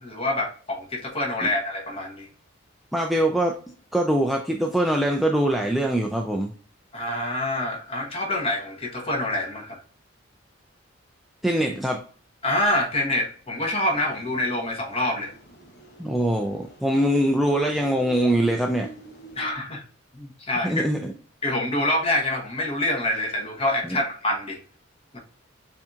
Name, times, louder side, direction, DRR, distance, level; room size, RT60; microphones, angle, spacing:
voice 1, 0.0-2.3 6.9-9.8 12.4-15.3 19.4-19.8 20.1-20.7 21.4-24.6 25.1-25.2, left 1 dB, 30° left, 1.1 m, -26 dB
voice 2, 2.9-3.5 3.9-6.5 11.4-12.0 16.0-18.9 20.6-21.1 23.8-24.0, right 1 dB, ahead, 0.3 m, -23 dB
sound 1, 13.9-19.5, right 3 dB, 55° left, 1.0 m, -47 dB
7.0 x 2.8 x 2.4 m
head